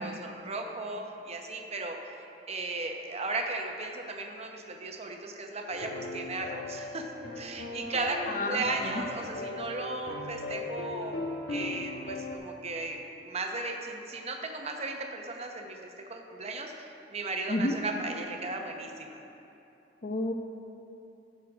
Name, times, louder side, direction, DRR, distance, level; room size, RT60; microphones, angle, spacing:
voice 1, 0.0-2.0 2.5-7.0 7.4-11.2 11.5-19.2, right 2 dB, 35° right, 3 dB, 0.8 m, -36 dB
sound 1, 5.7-12.4, left 2 dB, 75° left, 1.0 m, -38 dB
voice 2, 8.3-9.0 17.5-17.8 20.0-20.3, left 1 dB, 45° left, 4 dB, 0.7 m, -30 dB
14.5 x 6.5 x 3.6 m, 3.0 s
head